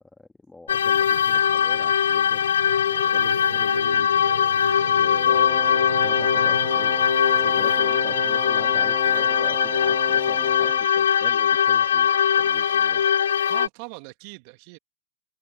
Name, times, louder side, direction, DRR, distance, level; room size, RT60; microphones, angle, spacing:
voice 1, 0.0-2.5 3.1-4.1 4.9-7.0 7.4-13.0, left 2 dB, 10° left, 1.7 m, -44 dB
sound 1, 0.7-13.7, left 8 dB, 70° left, 0.5 m, -21 dB
sound 2, 2.7-8.3, right 5 dB, 80° right, 5.0 m, -37 dB
voice 2, 4.6-5.3 7.3-7.8 12.7-12.8 13.5-14.8, right 34 dB, 50° right, 2.2 m, -43 dB
Wind instrument woodwind instrument, 5.2-11.0, right 5 dB, 15° right, 1.5 m, -36 dB
figure-of-eight pair, 100°, 0 cm